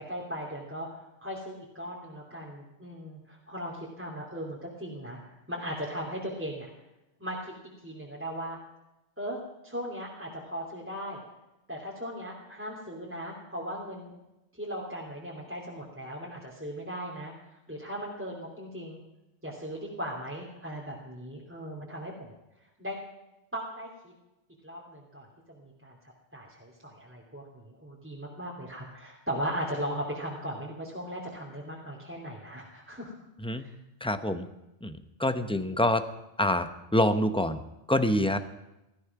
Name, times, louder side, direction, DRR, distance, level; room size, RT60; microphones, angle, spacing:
voice 1, 0.0-6.7 7.2-7.5 7.8-8.6 9.2-11.2 11.7-14.1 14.5-17.3 17.7-19.0 19.4-22.3 22.8-23.0 23.5-24.1 24.6-26.0 26.3-33.1 33.5-33.7, equal, 10° right, -4 dB, 2.9 m, -38 dB
voice 2, 34.0-34.5 34.8-36.0 36.4-37.6 37.9-38.4, left 1 dB, 5° left, 9 dB, 0.8 m, -26 dB
17.5 x 14.0 x 6.0 m, 0.94 s
omnidirectional pair, 1.2 m